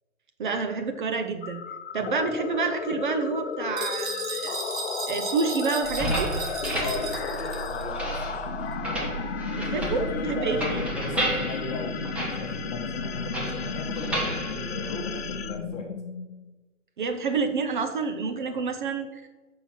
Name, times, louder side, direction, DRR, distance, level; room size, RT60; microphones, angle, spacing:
voice 1, 0.4-1.6 1.9-4.5 5.1-6.3 9.5-10.0 10.3-10.8 17.0-19.2, right 4 dB, 40° right, 6 dB, 0.7 m, -28 dB
sound 1, 1.4-16.5, left 7 dB, 50° left, 0.7 m, -34 dB
voice 2, 2.0-2.3 6.7-8.5 9.7-12.0 12.3-15.9 18.4-18.6, left 2 dB, 15° left, 2 dB, 1.1 m, -37 dB
sound 2, 3.8-7.9, right 3 dB, 85° right, 1.9 m, -35 dB
sound 3, 5.8-15.5, right 2 dB, 5° right, 0.6 m, -32 dB
6.9 x 5.7 x 5.8 m, 1.2 s
figure-of-eight pair, 135°, 39 cm